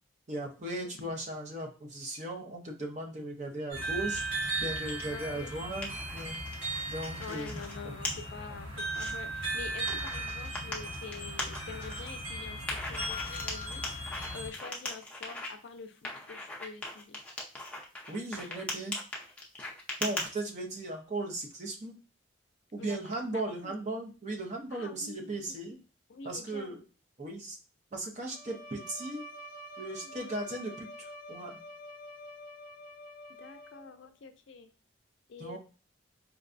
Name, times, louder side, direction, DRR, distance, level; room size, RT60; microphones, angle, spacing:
voice 1, 0.3-4.2 4.6-6.4 6.9-7.6 9.9-10.0 18.1-19.0 20.0-21.9 22.7-25.8 26.2-26.8 27.2-27.6 27.9-29.2 29.8-31.6 35.4-35.6, right 2 dB, 35° right, 1 dB, 0.6 m, -37 dB
sound 1, 3.7-14.5, right 2 dB, 65° right, 1.6 m, -37 dB
sound 2, 4.2-5.1 5.5-7.7 8.0-8.1 8.6-9.1 9.9-12.1 12.7-15.5 16.0-20.3, left 2 dB, 5° left, 0.5 m, -39 dB
voice 2, 5.1-5.6 7.2-17.2 22.8-23.7 24.7-25.6 26.1-26.8 30.0-30.3 33.4-34.7 35.3-35.6, left 4 dB, 60° left, 8 dB, 0.4 m, -46 dB
Bowed string instrument, 28.3-34.1, equal, 40° left, 0.8 m, -47 dB
4.5 x 2.2 x 2.5 m, 0.35 s
head